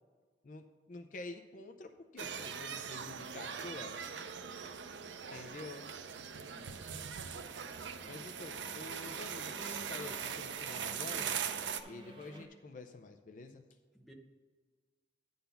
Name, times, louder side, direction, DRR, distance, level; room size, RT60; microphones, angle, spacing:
voice 1, 0.4-4.0 5.3-5.9 8.0-11.4 11.9-13.6, left 3 dB, 45° left, 7 dB, 0.5 m, -48 dB
sound 1, 2.2-11.8, right 7 dB, 85° right, 0.5 m, -41 dB
sound 2, 6.1-12.5, right 1 dB, 30° right, 0.9 m, -55 dB
voice 2, 6.4-7.1 8.0-8.7 13.9-14.1, right 1 dB, ahead, 1 dB, 0.8 m, -59 dB
10.0 x 4.0 x 6.8 m, 1.5 s
head